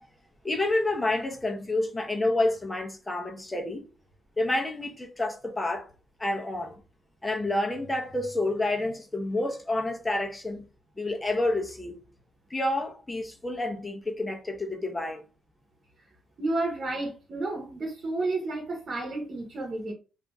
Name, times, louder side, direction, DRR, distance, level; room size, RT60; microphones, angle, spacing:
voice 1, 0.4-3.8 4.4-5.9 6.2-6.8 7.2-10.6 11.0-12.0 12.5-15.2, left 2 dB, 15° left, 0.8 m, -29 dB
voice 2, 16.4-19.9, right 2 dB, 45° right, 1.1 m, -31 dB
2.8 x 2.5 x 3.5 m
cardioid pair, 90°, 0 cm